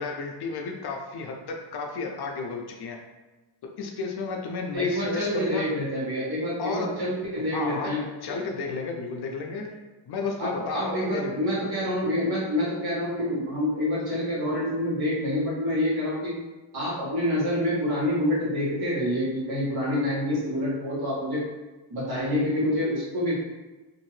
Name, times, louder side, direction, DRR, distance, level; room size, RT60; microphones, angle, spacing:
voice 1, 0.0-3.0 3.8-5.7 6.6-6.9 7.5-7.9 8.2-9.7 10.1-11.3, left 4 dB, 60° left, 2 dB, 0.5 m, -32 dB
voice 2, 4.7-8.0 10.4-16.3 16.7-21.4 21.9-23.4, left 1 dB, 55° right, -7 dB, 1.4 m, -27 dB
2.7 x 2.5 x 3.1 m, 1.2 s
wide cardioid pair, 135°, 46 cm